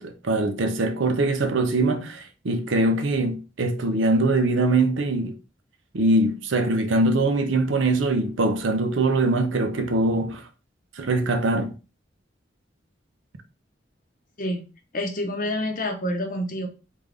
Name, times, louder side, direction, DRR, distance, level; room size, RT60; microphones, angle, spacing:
voice 1, 0.0-5.4 5.9-10.4 11.0-11.7, right 2 dB, 85° right, 0.6 m, -22 dB
voice 2, 14.9-16.7, left 1 dB, 45° left, 0.8 m, -27 dB
3.6 x 2.5 x 3.3 m
head